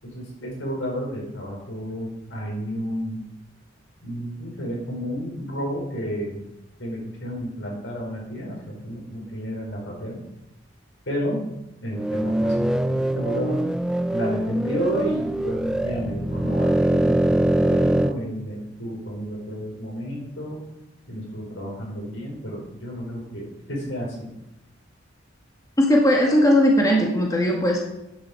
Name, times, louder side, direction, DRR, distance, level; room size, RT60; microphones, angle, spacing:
voice 1, 0.0-3.2 4.0-6.4 6.8-10.2 11.1-11.4 11.8-13.6 14.1-20.6 21.1-24.3, equal, 85° left, -2 dB, 5.4 m, -31 dB
sound 1, 11.9-18.1, right 1 dB, 5° right, 0.4 m, -23 dB
voice 2, 25.8-27.8, left 1 dB, 20° left, -1 dB, 2.0 m, -18 dB
10.5 x 8.6 x 6.9 m, 0.88 s
head